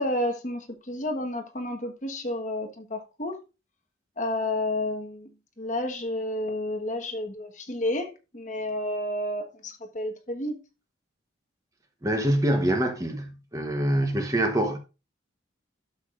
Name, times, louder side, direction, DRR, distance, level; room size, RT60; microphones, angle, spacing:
voice 1, 0.0-3.4 4.2-5.3 5.6-10.6, left 1 dB, 40° left, 1.3 m, -30 dB
voice 2, 12.0-14.8, right 1 dB, 15° right, 1.0 m, -25 dB
12.0 x 6.8 x 2.5 m
head